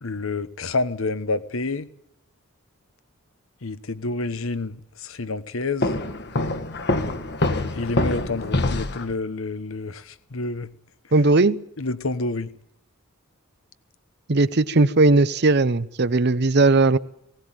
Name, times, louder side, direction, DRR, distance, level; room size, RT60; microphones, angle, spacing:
voice 1, 0.0-1.9 3.6-6.0 7.7-10.7 11.8-12.5, left 3 dB, 70° left, 1.1 m, -28 dB
Walk footsteps, 5.8-9.1, left 2 dB, 50° left, 1.7 m, -25 dB
voice 2, 11.1-11.6 14.3-17.0, right 3 dB, 50° right, 0.8 m, -18 dB
19.0 x 17.5 x 9.0 m
head